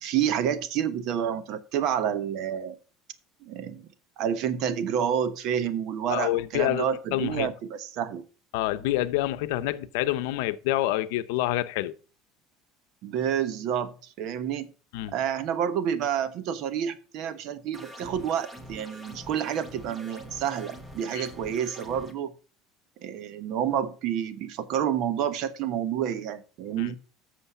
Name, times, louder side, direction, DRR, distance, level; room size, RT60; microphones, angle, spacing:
voice 1, 0.0-2.7 3.4-3.9 4.2-8.2 13.0-14.7 15.1-22.3 23.0-27.0, right 9 dB, 55° right, 1.0 m, -29 dB
voice 2, 6.1-6.9 7.1-7.5 8.5-11.9 14.9-15.1 21.1-21.3 26.8-26.9, left 15 dB, 80° left, 0.7 m, -27 dB
sound 1, 17.7-22.1, right 1 dB, 15° right, 1.2 m, -44 dB
8.2 x 6.5 x 5.5 m
cardioid pair, 140°, 0 cm